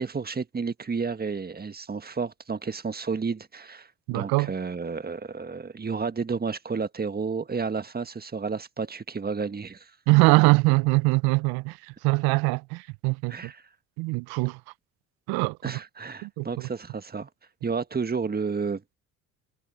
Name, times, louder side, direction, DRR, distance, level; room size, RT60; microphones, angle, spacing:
voice 1, 0.0-9.9 13.3-13.6 15.6-17.3 17.6-18.8, right 5 dB, 20° right, 1.6 m, -31 dB
voice 2, 4.1-4.5 10.1-13.5 14.0-14.6 15.3-15.8 16.2-16.7, right 26 dB, 65° right, 0.7 m, -23 dB
hypercardioid pair, 65°, 41 cm